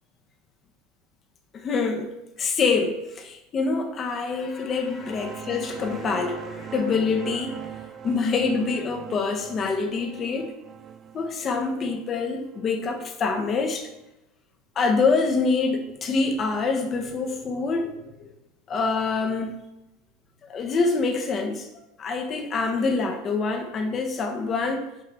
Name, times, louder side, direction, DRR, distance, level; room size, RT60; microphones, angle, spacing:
voice 1, 1.5-2.1 2.4-10.5 11.1-13.9 14.8-18.3 18.7-19.5 20.5-21.7 22.0-24.9, left 4 dB, 35° left, 6 dB, 1.1 m, -26 dB
sound 1, 4.7-14.0, right 8 dB, 35° right, 0.5 m, -41 dB
7.5 x 4.8 x 3.4 m, 0.94 s
figure-of-eight pair, 75°, 0 cm